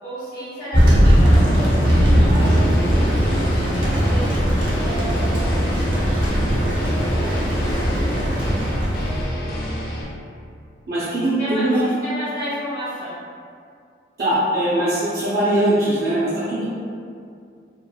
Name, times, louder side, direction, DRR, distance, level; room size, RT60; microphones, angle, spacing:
voice 1, 0.0-1.8 3.3-5.4 7.1-8.5 11.2-11.6 12.0-13.2, equal, 25° left, -15 dB, 0.8 m, -33 dB
Thunder, 0.7-9.3, equal, 85° right, 0.8 m, -18 dB
sound 1, 1.3-10.0, equal, 55° left, 0.4 m, -27 dB
voice 2, 2.3-2.7 3.2-3.4 10.9-11.8 14.2-16.6, right 1 dB, 55° right, -12 dB, 0.6 m, -21 dB
3.0 x 2.5 x 2.2 m, 2.3 s
head